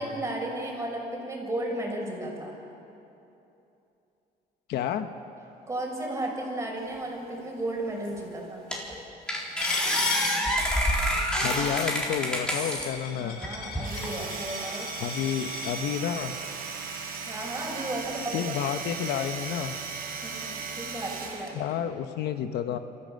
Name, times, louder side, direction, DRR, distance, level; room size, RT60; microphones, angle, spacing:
voice 1, 0.0-2.5 5.7-8.7 13.2-14.9 17.3-18.4 20.2-21.8, right 1 dB, 15° right, -1 dB, 5.7 m, -34 dB
voice 2, 4.7-5.1 11.4-13.4 15.0-16.3 18.3-19.8 21.5-22.8, left 9 dB, 75° left, 9 dB, 1.0 m, -30 dB
sound 1, 8.0-8.1 8.7-8.9 9.3-12.9 13.4-14.1, equal, 5° left, 4.0 m, -27 dB
Coin (dropping), 9.6-15.8, left 6 dB, 60° left, 2.9 m, -36 dB
Domestic sounds home sounds, 13.7-21.6, right 5 dB, 60° right, 4.0 m, -37 dB
28.0 x 14.0 x 6.7 m, 2.9 s
cardioid pair, 110°, 17 cm